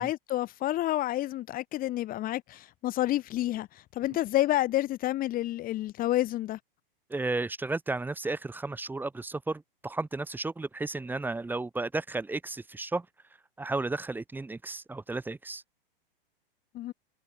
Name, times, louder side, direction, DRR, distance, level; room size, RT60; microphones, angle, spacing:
voice 1, 0.0-3.7 4.0-6.6 16.7-16.9, left 15 dB, 30° left, 2.0 m, -29 dB
voice 2, 7.1-13.1 13.6-15.6, right 3 dB, 5° right, 1.6 m, -33 dB
hypercardioid pair, 115°, 29 cm